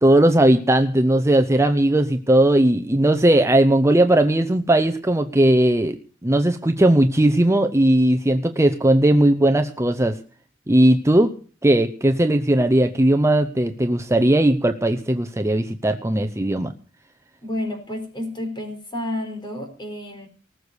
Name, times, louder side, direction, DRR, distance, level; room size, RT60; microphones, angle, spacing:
voice 1, 0.0-6.0 6.2-10.2 10.7-11.3 11.6-16.7, right 1 dB, 15° right, 8 dB, 0.8 m, -18 dB
voice 2, 17.4-20.3, left 1 dB, 25° left, 5 dB, 4.4 m, -30 dB
19.5 x 6.8 x 8.1 m, 0.40 s
head